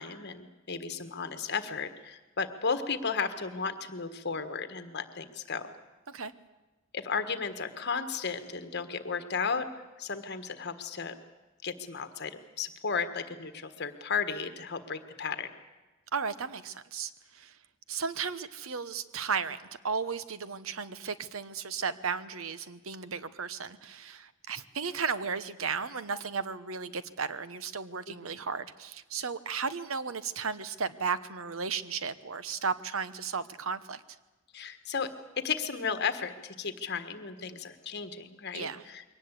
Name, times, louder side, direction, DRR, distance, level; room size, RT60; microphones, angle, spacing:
voice 1, 0.0-5.7 6.9-9.7 10.0-11.2 11.6-15.5 28.1-28.2 34.5-35.1 35.4-39.1, left 5 dB, 55° left, 10 dB, 1.6 m, -34 dB
voice 2, 16.1-17.6 17.9-19.6 19.8-34.0 38.5-38.9, right 5 dB, 80° right, 14 dB, 1.0 m, -34 dB
22.5 x 18.5 x 8.4 m, 1.1 s
head